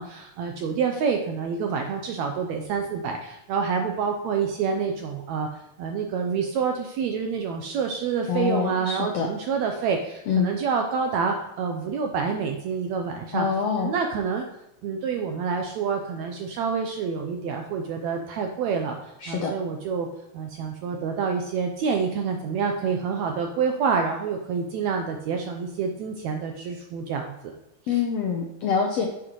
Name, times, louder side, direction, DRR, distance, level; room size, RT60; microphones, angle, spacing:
voice 1, 0.0-5.5 5.8-13.5 13.7-14.4 14.8-20.1 20.3-27.5 27.8-28.0, right 6 dB, 80° right, 3 dB, 1.6 m, -27 dB
voice 2, 8.3-9.3 10.3-10.5 13.3-13.9 19.2-19.5 27.9-29.1, left 6 dB, 80° left, 1 dB, 1.4 m, -25 dB
9.7 x 7.3 x 3.1 m, 0.86 s
omnidirectional pair, 4.0 m